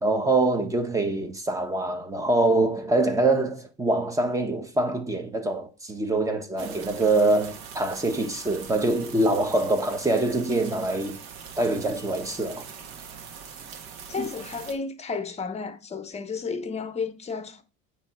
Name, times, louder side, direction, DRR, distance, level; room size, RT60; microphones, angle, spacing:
voice 1, 0.0-11.2 11.6-12.7 14.2-14.3, right 2 dB, 10° right, 1.1 m, -24 dB
sound 1, 6.6-14.7, right 7 dB, 65° right, 1.4 m, -42 dB
voice 2, 14.1-17.6, left 5 dB, 20° left, 0.9 m, -32 dB
8.7 x 3.2 x 4.8 m
cardioid pair, 130°, 30 cm